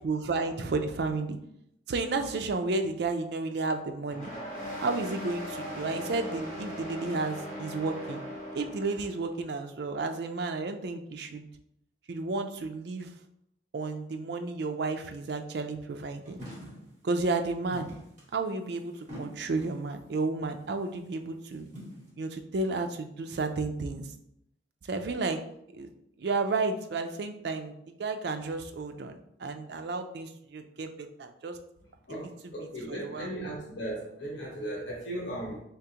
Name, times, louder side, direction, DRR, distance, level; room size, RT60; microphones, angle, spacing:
voice 1, 0.0-1.4 1.9-4.3 4.8-8.2 8.5-11.5 12.1-13.1 13.7-16.4 17.0-17.9 18.3-21.7 22.1-24.1 24.8-25.4 25.7-25.9 26.2-31.6 32.1-32.5 32.9-33.3, right 3 dB, 60° right, 6 dB, 0.4 m, -32 dB
sound 1, 4.1-9.2, equal, 40° left, 1.3 m, -38 dB
sound 2, 16.3-17.0 17.7-19.9 20.5-20.8 21.3-22.1, equal, 40° right, 1.5 m, -45 dB
voice 2, 32.1-35.6, right 1 dB, 75° left, -3 dB, 1.1 m, -37 dB
3.6 x 3.4 x 2.8 m, 0.76 s
head